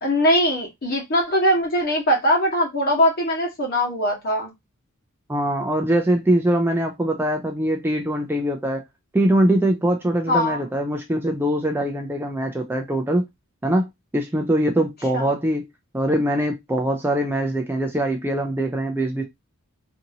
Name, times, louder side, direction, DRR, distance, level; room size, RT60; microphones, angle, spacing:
voice 1, 0.0-4.5 10.3-10.6 15.1-15.3, equal, 45° left, 1.1 m, -21 dB
voice 2, 5.3-8.8 9.1-13.2 13.6-13.9 14.1-15.7 15.9-19.2, right 1 dB, 10° right, 0.4 m, -22 dB
2.7 x 2.6 x 2.7 m
head